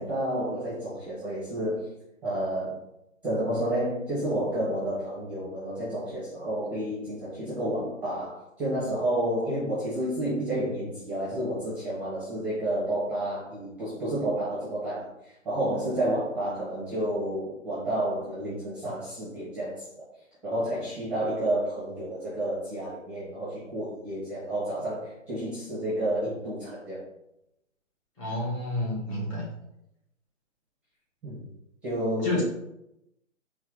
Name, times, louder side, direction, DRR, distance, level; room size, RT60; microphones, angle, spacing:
voice 1, 0.0-1.9 2.2-2.7 3.2-19.8 20.4-27.0 31.2-31.5 31.8-32.4, right 1 dB, 5° right, -11 dB, 0.9 m, -30 dB
voice 2, 28.2-29.5 32.2-32.4, left 2 dB, 25° left, -4 dB, 1.4 m, -29 dB
4.5 x 2.9 x 3.7 m, 0.85 s
hypercardioid pair, 160°, 38 cm